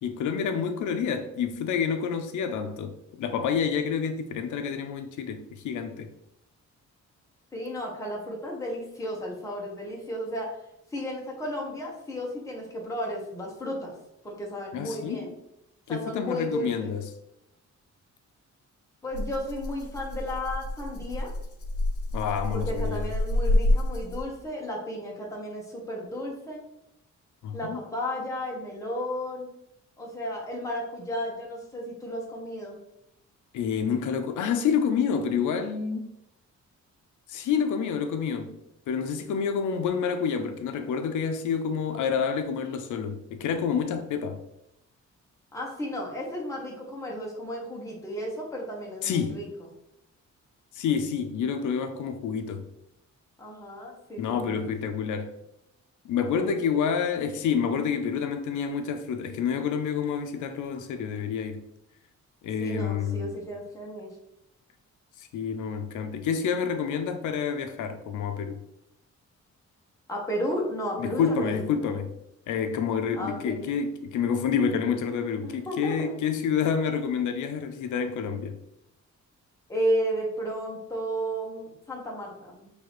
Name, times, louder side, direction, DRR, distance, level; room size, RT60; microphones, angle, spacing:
voice 1, 0.0-6.1 14.7-15.3 15.9-17.1 22.1-23.0 27.4-27.8 33.5-36.1 37.3-38.6 38.9-44.4 49.0-49.4 50.7-52.7 54.2-55.3 56.0-61.6 62.4-63.3 65.2-68.6 71.0-72.1 72.5-78.6, left 6 dB, 85° left, 0.5 m, -28 dB
voice 2, 7.5-10.5 10.9-13.9 14.2-15.3 15.9-16.9 19.0-21.3 22.5-26.6 27.5-29.5 30.0-32.8 45.5-49.5 53.4-54.5 62.6-64.1 70.1-71.6 73.2-73.6 75.4-76.4 79.7-82.7, equal, 10° left, 1.0 m, -33 dB
Rattle (instrument), 19.1-24.5, left 1 dB, 50° left, 0.7 m, -28 dB
6.0 x 2.8 x 3.0 m
wide cardioid pair, 160°, 29 cm